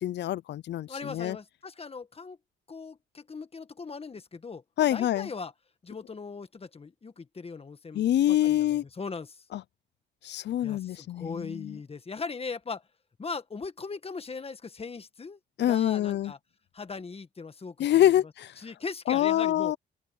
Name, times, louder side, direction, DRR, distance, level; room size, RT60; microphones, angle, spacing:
voice 1, 0.0-1.4 4.8-5.3 7.9-8.8 9.5-9.6 10.2-11.8 15.6-16.3 17.8-18.5 19.1-19.8, left 12 dB, 60° left, 0.6 m, -25 dB
voice 2, 0.9-2.4 2.7-5.5 5.8-9.4 10.6-12.8 13.2-15.4 15.7-16.4 16.7-18.0 18.6-19.7, left 4 dB, 30° left, 1.6 m, -39 dB
open air
cardioid pair, 90°, 20 cm